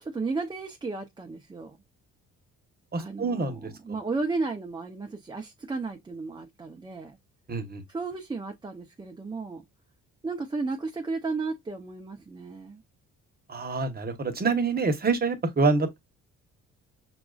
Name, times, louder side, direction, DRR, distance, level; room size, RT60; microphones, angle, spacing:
voice 1, 0.0-1.8 3.0-7.2 7.9-9.6 10.2-12.8, right 3 dB, 15° right, 0.5 m, -34 dB
voice 2, 2.9-3.7 7.5-7.8 13.5-16.0, right 4 dB, 30° right, 1.0 m, -26 dB
5.9 x 2.4 x 2.3 m
cardioid pair, 90°, 30 cm